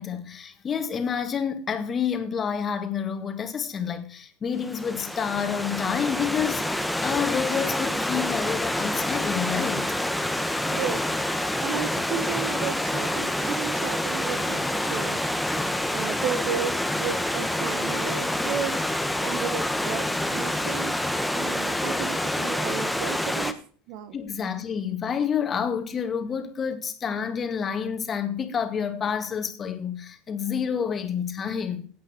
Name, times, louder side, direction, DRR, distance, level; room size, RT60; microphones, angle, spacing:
voice 1, 0.0-9.9 24.1-31.9, left 7 dB, 30° left, 2.0 m, -29 dB
Stream / Liquid, 4.6-23.5, left 1 dB, ahead, 1.3 m, -27 dB
voice 2, 10.6-23.6 23.9-24.2, right 8 dB, 60° right, 1.3 m, -34 dB
16.0 x 8.4 x 4.6 m
hypercardioid pair, 80°, 0 cm